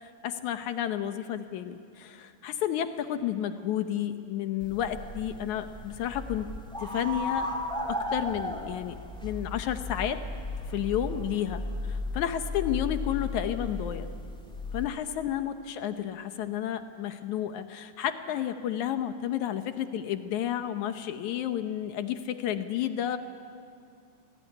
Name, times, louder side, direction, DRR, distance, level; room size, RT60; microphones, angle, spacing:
voice 1, 0.0-6.5 6.8-7.5 7.9-9.0 9.2-10.2 10.7-11.6 11.9-14.1 14.7-23.2, left 10 dB, 70° left, 9 dB, 2.2 m, -31 dB
sound 1, 4.6-14.8, left 2 dB, ahead, 2.0 m, -35 dB
27.0 x 19.0 x 10.0 m, 2.3 s
omnidirectional pair, 3.7 m